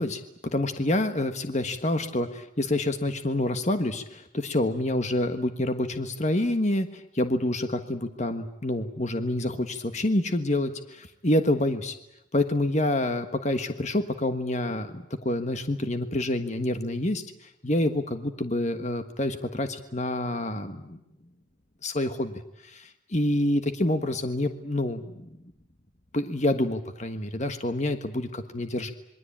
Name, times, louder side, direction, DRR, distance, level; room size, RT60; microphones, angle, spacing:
voice 1, 0.0-11.9 12.3-17.2 17.6-21.0 21.8-25.3 26.1-28.9, left 1 dB, 35° left, 8 dB, 1.5 m, -27 dB
27.0 x 22.5 x 8.7 m, 0.84 s
head